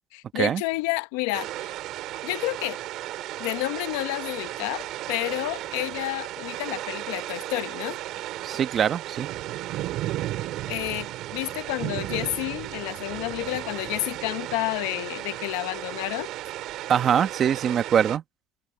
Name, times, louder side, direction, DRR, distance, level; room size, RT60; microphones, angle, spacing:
voice 1, 0.1-1.7 2.2-2.8 3.4-8.0 10.7-16.3, left 21 dB, 85° left, 0.8 m, -30 dB
sound 1, 1.3-18.2, right 15 dB, 60° right, 3.4 m, -34 dB
voice 2, 8.4-9.3 16.9-18.2, right 8 dB, 35° right, 1.2 m, -23 dB
cardioid pair, 125°, 0 cm